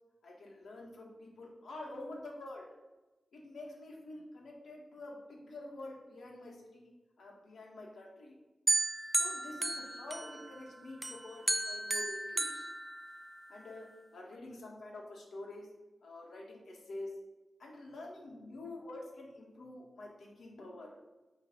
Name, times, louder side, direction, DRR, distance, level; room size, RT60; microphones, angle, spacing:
voice 1, 0.2-2.6 3.3-6.9 7.2-8.4 9.2-12.7 13.5-13.9 14.1-15.7 16.0-17.1 17.6-21.0, left 2 dB, 70° left, -1 dB, 1.6 m, -47 dB
sound 1, 8.7-10.6 11.0-13.5, right 2 dB, 15° right, 0.4 m, -34 dB
8.0 x 3.3 x 5.9 m, 1.1 s
wide cardioid pair, 145°, 0 cm